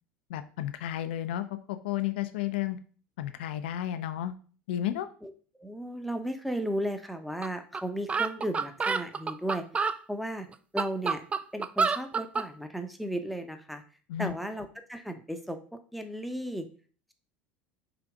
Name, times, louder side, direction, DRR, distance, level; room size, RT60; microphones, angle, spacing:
voice 1, 0.3-2.8 3.2-4.3 4.7-5.1 14.1-14.3, left 12 dB, 75° left, 10 dB, 0.6 m, -32 dB
voice 2, 5.6-9.6 10.1-10.5 10.7-11.2 11.5-13.8 14.2-16.7, right 1 dB, ahead, 7 dB, 1.0 m, -35 dB
sound 1, 7.4-7.5 7.7-7.8 8.1-10.0 10.5-12.5, right 5 dB, 20° right, 0.4 m, -28 dB
5.9 x 3.4 x 5.0 m, 0.40 s
hypercardioid pair, 75°, 6 cm